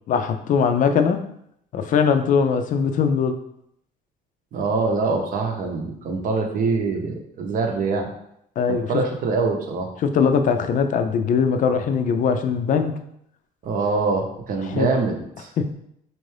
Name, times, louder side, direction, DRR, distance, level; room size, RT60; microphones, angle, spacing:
voice 1, 0.1-1.2 1.7-3.4 8.6-8.9 10.0-13.0 14.6-14.9 15.6-15.7, left 6 dB, 50° left, 7 dB, 0.4 m, -21 dB
voice 2, 4.5-8.1 8.9-9.9 13.6-15.5, right 4 dB, 55° right, 3 dB, 0.8 m, -24 dB
4.4 x 2.6 x 3.2 m, 0.74 s
cardioid pair, 110°, 17 cm